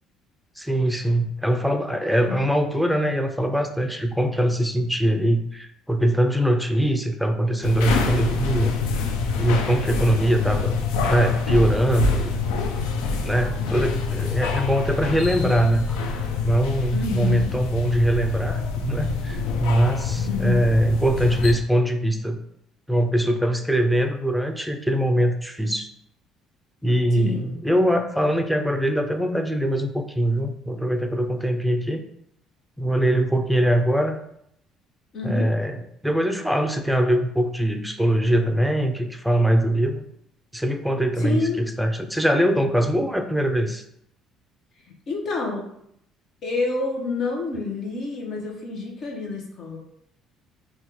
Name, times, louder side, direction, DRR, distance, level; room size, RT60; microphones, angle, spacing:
voice 1, 0.6-8.8 9.4-10.8 11.1-12.4 13.2-16.0 16.4-22.4 22.9-25.9 26.8-32.0 32.8-34.2 35.2-35.8 36.0-40.1 40.5-43.8, right 1 dB, ahead, 6 dB, 0.4 m, -22 dB
sound 1, 7.6-21.5, left 4 dB, 90° left, 0.3 m, -26 dB
voice 2, 16.9-17.6 20.1-20.6 27.2-27.5 35.1-35.5 41.2-41.6 44.9-45.7 46.4-49.8, left 3 dB, 60° left, 0 dB, 0.8 m, -28 dB
3.5 x 2.3 x 3.0 m, 0.74 s
supercardioid pair, 75°, 0 cm